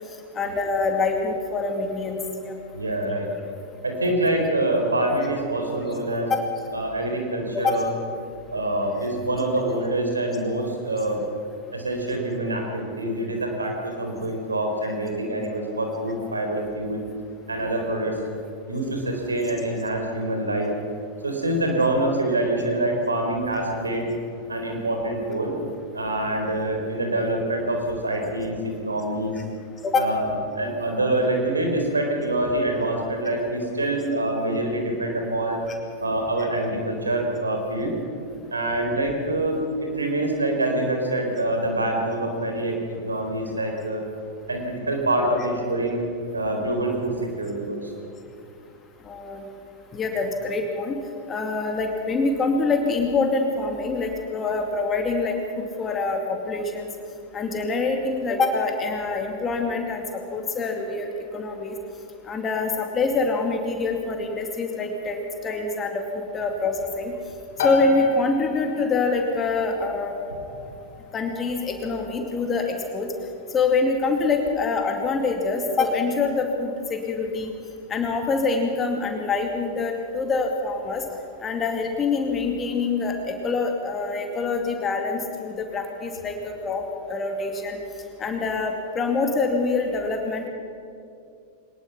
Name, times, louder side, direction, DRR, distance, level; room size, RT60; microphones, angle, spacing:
voice 1, 0.3-2.6 6.3-6.4 7.5-7.8 29.8-30.1 35.7-35.8 49.0-49.4 49.9-51.0 51.3-56.9 57.3-61.8 62.3-67.1 67.6-70.1 71.1-73.1 73.5-77.5 77.9-81.0 81.4-86.8 87.1-87.8 88.2-90.5, left 3 dB, 20° left, 3 dB, 2.4 m, -25 dB
voice 2, 2.7-3.3 3.8-6.3 6.7-7.9 8.5-11.2 11.7-17.0 17.5-18.2 18.7-20.7 21.2-24.1 24.5-25.5 25.9-29.4 30.0-30.3 30.5-35.6 36.0-37.9 38.5-42.7 43.0-44.0 44.5-47.9, right 1 dB, 80° right, 2 dB, 4.2 m, -25 dB
sound 1, 67.6-82.1, left 5 dB, 55° left, 4.0 m, -37 dB
23.0 x 20.0 x 5.9 m, 2.5 s
figure-of-eight pair, 90°, 0 cm